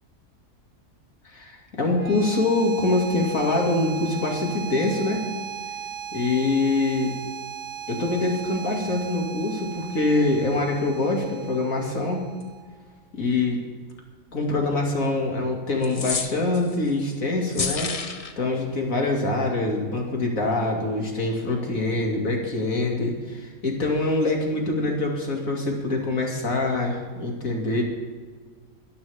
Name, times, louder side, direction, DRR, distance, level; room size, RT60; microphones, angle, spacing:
voice 1, 1.2-5.2 6.1-7.2 7.9-12.2 13.1-13.6 14.3-17.9 18.4-27.8, left 2 dB, 75° left, 0 dB, 2.8 m, -24 dB
sound 1, 1.8-12.8, right 9 dB, 75° right, 3.5 m, -37 dB
sound 2, 15.8-16.8 17.5-18.3, left 4 dB, 35° left, 0.7 m, -29 dB
22.5 x 11.5 x 3.6 m, 1.5 s
omnidirectional pair, 1.5 m